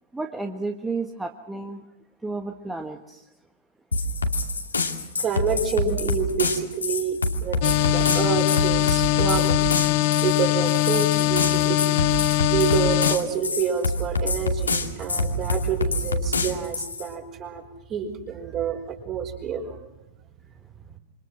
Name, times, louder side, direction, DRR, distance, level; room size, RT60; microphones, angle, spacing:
voice 1, 0.1-1.8 2.2-3.3 10.1-10.2 13.1-13.2 18.6-18.8 20.4-20.6, right 3 dB, 10° right, 1.5 m, -33 dB
sound 1, 3.9-17.1, left 3 dB, 75° left, 2.6 m, -26 dB
voice 2, 5.2-9.7 10.2-11.8 12.5-17.6 17.9-19.9, right 6 dB, 30° right, 5.5 m, -28 dB
sound 2, 7.6-13.2, left 16 dB, 45° left, 1.0 m, -22 dB
27.5 x 25.0 x 6.2 m
figure-of-eight pair, 100°, 0 cm